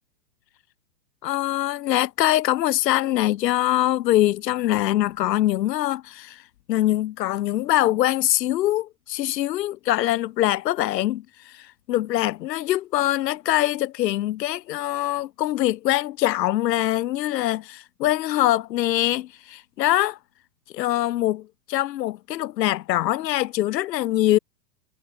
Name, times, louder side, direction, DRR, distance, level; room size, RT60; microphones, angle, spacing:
voice 1, 1.2-6.4 6.7-20.2 20.7-24.4, left 14 dB, 80° left, 0.9 m, -23 dB
supercardioid pair, 160°, 49 cm